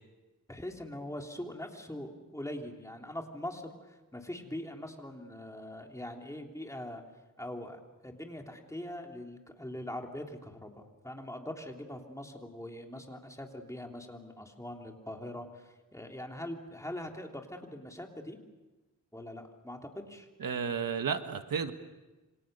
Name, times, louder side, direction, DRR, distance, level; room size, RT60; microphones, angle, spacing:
voice 1, 0.5-7.0 7.4-18.4 19.1-20.3, left 1 dB, 10° left, 2 dB, 3.3 m, -42 dB
voice 2, 20.4-21.7, right 6 dB, 85° right, 8 dB, 1.6 m, -32 dB
28.0 x 26.0 x 6.8 m, 1.1 s
wide cardioid pair, 120°, 33 cm